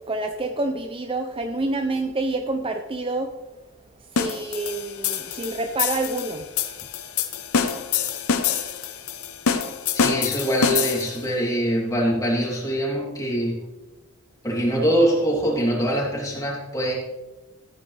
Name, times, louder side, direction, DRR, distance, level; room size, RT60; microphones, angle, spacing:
voice 1, 0.1-3.3 4.2-6.5, right 2 dB, 25° right, 6 dB, 0.5 m, -27 dB
sound 1, 4.2-11.3, left 7 dB, 85° left, 0.9 m, -26 dB
voice 2, 9.9-13.6 14.4-16.9, equal, 15° left, -4 dB, 3.1 m, -23 dB
14.0 x 9.6 x 3.3 m, 1.1 s
head